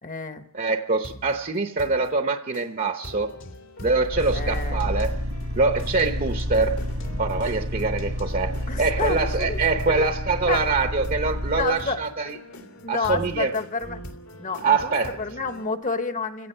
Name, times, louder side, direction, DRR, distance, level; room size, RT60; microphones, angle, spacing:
voice 1, 0.0-0.4 4.3-4.9 8.7-9.6 9.9-10.1 10.5-10.7 11.6-12.0 12.8-14.0 14.4-16.5, left 4 dB, 40° left, 1.1 m, -30 dB
voice 2, 0.5-3.3 3.8-5.1 5.5-6.8 7.2-12.4 12.9-13.5 14.6-15.2, right 3 dB, 40° right, 0.8 m, -24 dB
sound 1, 1.0-1.3 1.8-2.1 2.5-2.7 3.0-15.7, equal, 85° left, 2.9 m, -42 dB
sound 2, 3.4-5.4 5.8-9.8, left 1 dB, 60° left, 2.1 m, -42 dB
sound 3, 4.1-11.7, equal, 80° right, 2.0 m, -29 dB
30.0 x 16.5 x 5.6 m
head